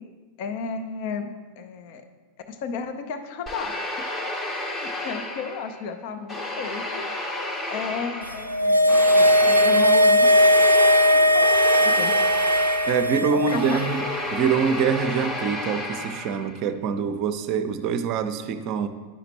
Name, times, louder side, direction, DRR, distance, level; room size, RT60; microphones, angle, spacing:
voice 1, 0.4-2.0 2.5-3.9 4.4-7.1 7.7-12.1 13.3-13.8, left 5 dB, 45° left, 7 dB, 0.6 m, -33 dB
sound 1, 3.5-5.9 6.3-16.6, left 2 dB, 20° left, 0.8 m, -32 dB
sound 2, 8.3-13.8 14.1-14.2, equal, 90° right, 0.3 m, -18 dB
voice 2, 12.9-14.0 14.3-18.9, right 6 dB, 40° right, 10 dB, 0.5 m, -25 dB
10.0 x 5.8 x 2.9 m, 1.3 s
figure-of-eight pair, 90°, 0 cm